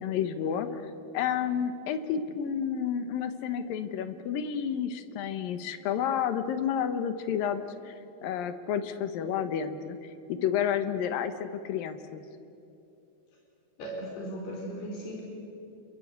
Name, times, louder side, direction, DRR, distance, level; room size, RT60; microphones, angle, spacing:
voice 1, 0.0-7.9 8.2-12.2, left 8 dB, 70° left, 10 dB, 2.7 m, -31 dB
voice 2, 13.8-15.2, right 1 dB, 90° left, -1 dB, 6.3 m, -37 dB
28.0 x 22.5 x 8.1 m, 2.7 s
omnidirectional pair, 4.5 m